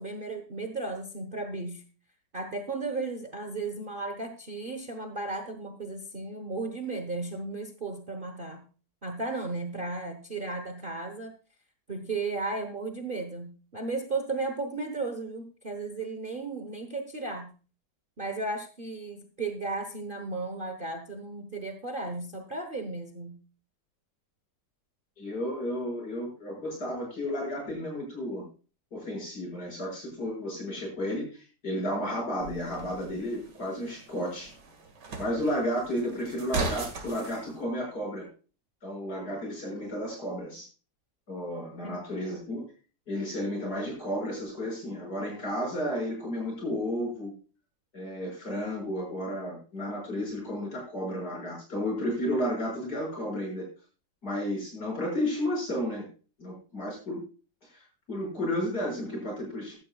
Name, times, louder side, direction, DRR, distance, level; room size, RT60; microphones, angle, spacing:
voice 1, 0.0-1.8 2.3-8.6 9.0-11.3 11.9-17.5 18.2-23.4 41.8-42.0, right 3 dB, 35° right, 6 dB, 1.0 m, -35 dB
voice 2, 25.2-28.4 28.9-34.5 35.2-38.3 38.8-40.7 41.3-42.6 43.1-47.3 47.9-53.7 54.2-56.1 56.4-57.2 57.6-59.8, equal, 60° left, -2 dB, 6.7 m, -32 dB
sound 1, 32.4-37.4, right 3 dB, 70° right, 2.6 m, -38 dB
15.0 x 12.0 x 2.3 m, 0.36 s
omnidirectional pair, 1.9 m